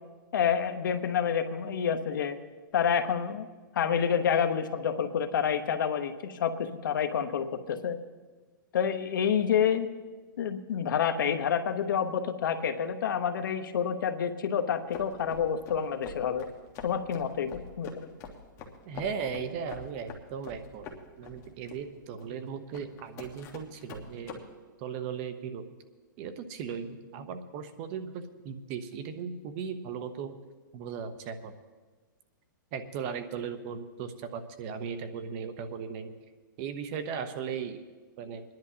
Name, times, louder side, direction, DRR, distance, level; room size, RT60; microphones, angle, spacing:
voice 1, 0.3-2.4 2.7-3.5 3.7-8.0 8.7-9.9 10.4-16.5 16.8-18.1, left 7 dB, 70° left, 7 dB, 1.0 m, -28 dB
sound 1, 14.9-24.4, left 5 dB, 25° left, 1.3 m, -45 dB
voice 2, 18.9-20.9 21.2-24.4 24.8-25.6 26.2-30.3 30.7-31.5 32.7-36.1 36.6-37.8 38.2-38.4, right 6 dB, 35° right, 10 dB, 0.8 m, -37 dB
26.0 x 10.5 x 2.8 m, 1.4 s
hypercardioid pair, 150°, 11 cm